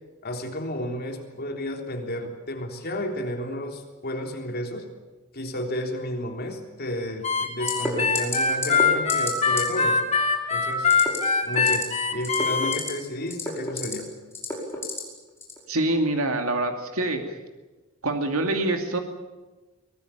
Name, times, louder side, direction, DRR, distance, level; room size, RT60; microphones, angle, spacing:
voice 1, 0.2-4.9 5.3-10.0 10.5-11.1 11.4-14.1, left 1 dB, 50° left, 3 dB, 3.6 m, -32 dB
Harmonica, 7.2-12.8, left 5 dB, 30° left, 2.6 m, -23 dB
sound 1, 7.7-7.9 8.2-8.4 8.6-8.8 9.1-9.3 9.6-9.7 10.9-11.2 11.5-11.8 12.2-12.9 13.3-13.9 14.3-15.0 15.4-15.6, left 3 dB, 10° left, 5.4 m, -29 dB
voice 2, 15.7-17.2 18.0-19.0, right 2 dB, 80° right, 4 dB, 2.6 m, -25 dB
24.0 x 19.0 x 9.2 m, 1.2 s
head